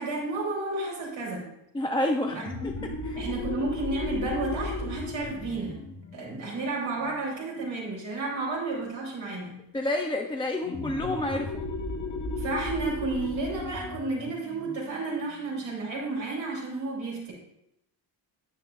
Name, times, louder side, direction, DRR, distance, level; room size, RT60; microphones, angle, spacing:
voice 1, 0.0-1.5 2.3-2.4 2.8-5.8 6.1-9.6 12.4-17.3, right 3 dB, 85° right, -6 dB, 3.2 m, -32 dB
voice 2, 1.7-2.4 2.6-2.7 3.0-3.2 9.7-11.7, left 1 dB, 10° left, 3 dB, 0.5 m, -29 dB
sound 1, 2.3-7.6 10.6-15.9, left 3 dB, 45° left, 1.4 m, -36 dB
10.0 x 8.9 x 2.4 m, 0.80 s
wide cardioid pair, 150°, 45 cm